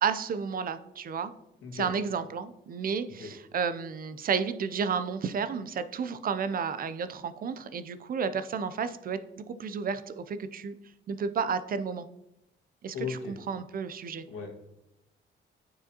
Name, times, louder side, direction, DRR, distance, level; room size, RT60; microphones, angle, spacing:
voice 1, 0.0-1.3 1.7-10.7 11.1-12.1 12.8-13.2 13.5-14.2, right 6 dB, 45° right, 12 dB, 0.5 m, -32 dB
voice 2, 12.9-13.3 14.3-14.5, left 6 dB, 80° left, 0 dB, 1.7 m, -36 dB
9.1 x 4.9 x 2.8 m, 0.86 s
cardioid pair, 90°, 20 cm